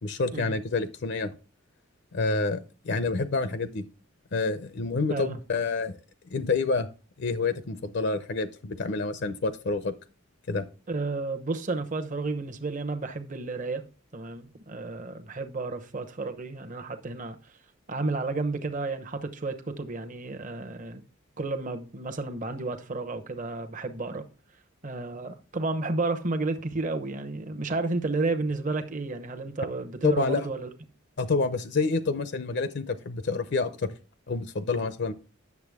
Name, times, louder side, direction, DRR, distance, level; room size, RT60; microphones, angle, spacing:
voice 1, 0.0-1.3 2.1-3.8 4.3-6.0 6.3-6.9 7.2-9.9 10.5-10.7 30.0-30.5 31.2-33.9 34.3-35.1, left 3 dB, 55° left, 0.6 m, -28 dB
voice 2, 10.9-13.8 14.1-17.4 17.9-21.0 21.4-24.2 24.8-30.7, right 3 dB, 40° right, 0.9 m, -31 dB
9.6 x 6.9 x 3.5 m
head